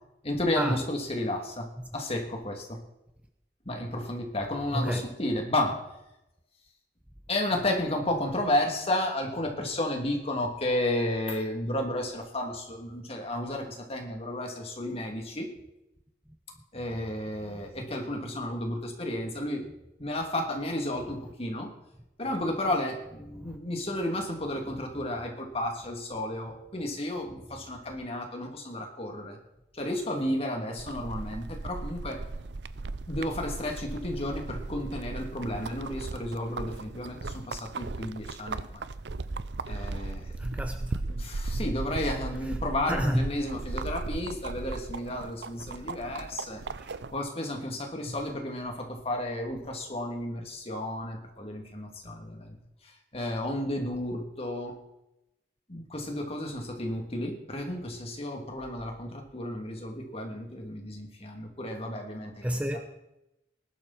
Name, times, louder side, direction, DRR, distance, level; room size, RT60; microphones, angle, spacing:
voice 1, 0.2-1.7 1.9-2.8 3.6-5.8 7.3-15.5 16.7-19.7 20.0-21.7 22.2-29.4 29.7-32.2 33.1-38.8 39.7-40.3 41.0-46.6 47.1-52.6 53.1-54.8 55.7-62.6, left 1 dB, 35° left, 3.1 m, -32 dB
voice 2, 4.7-5.1 17.5-17.7 23.3-23.6 40.4-41.0 41.5-41.7 42.9-43.3 46.8-47.0 48.0-48.1 62.4-62.8, equal, 10° right, 0.9 m, -30 dB
sound 1, 30.8-47.2, right 3 dB, 75° right, 0.7 m, -37 dB
19.5 x 12.0 x 4.5 m
head